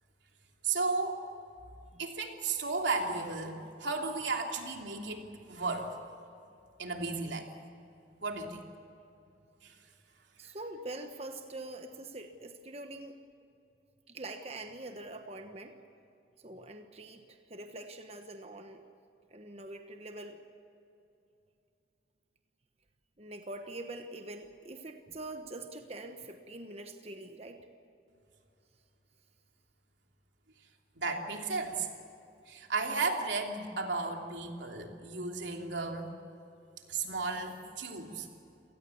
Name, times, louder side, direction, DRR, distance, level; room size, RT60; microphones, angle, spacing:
voice 1, 0.6-1.2 2.0-6.0 6.8-7.5 8.2-8.6 9.6-9.7 31.0-31.9 32.5-36.1 36.9-38.3, right 3 dB, 85° right, 2 dB, 3.0 m, -34 dB
voice 2, 10.4-13.2 14.1-15.7 16.4-18.8 19.3-20.4 23.2-27.7, right 2 dB, 35° right, 6 dB, 1.2 m, -44 dB
27.5 x 19.0 x 7.2 m, 2.7 s
head